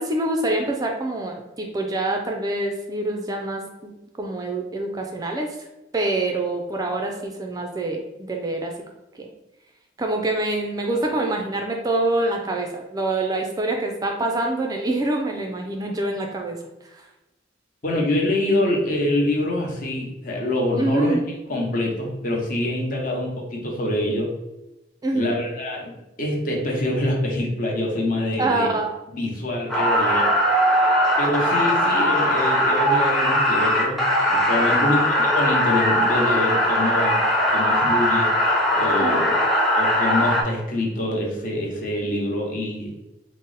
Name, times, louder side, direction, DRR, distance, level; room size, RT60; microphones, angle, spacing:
voice 1, 0.0-3.9 4.2-5.7 5.9-8.7 9.1-9.3 10.0-16.6 16.8-17.1 20.8-21.2 25.0-25.4 28.4-28.9 34.7-34.9 39.0-39.3, right 2 dB, 20° right, 2 dB, 0.3 m, -25 dB
voice 2, 17.8-21.2 21.5-24.3 25.1-25.9 26.2-28.7 29.1-30.3 31.2-34.0 34.3-37.2 37.5-38.3 38.7-39.3 39.7-43.0, left 1 dB, 45° left, -1 dB, 0.9 m, -25 dB
Crowd screaming, 29.7-40.4, equal, ahead, 0.7 m, -20 dB
3.9 x 2.0 x 3.9 m, 0.99 s
head